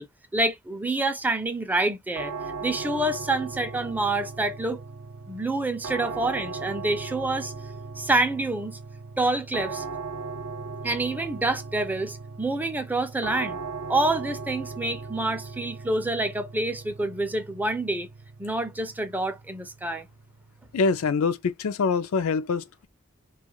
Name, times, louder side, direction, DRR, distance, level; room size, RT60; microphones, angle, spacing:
voice 1, 0.0-2.3 2.6-4.8 5.3-7.5 8.0-8.8 9.2-9.8 10.8-13.6 13.9-18.1 18.4-20.1, right 2 dB, 10° right, 0.4 m, -27 dB
sound 1, 2.2-21.1, right 4 dB, 85° right, 0.5 m, -38 dB
voice 2, 20.7-22.9, left 4 dB, 85° left, 0.4 m, -25 dB
2.3 x 2.3 x 3.0 m
head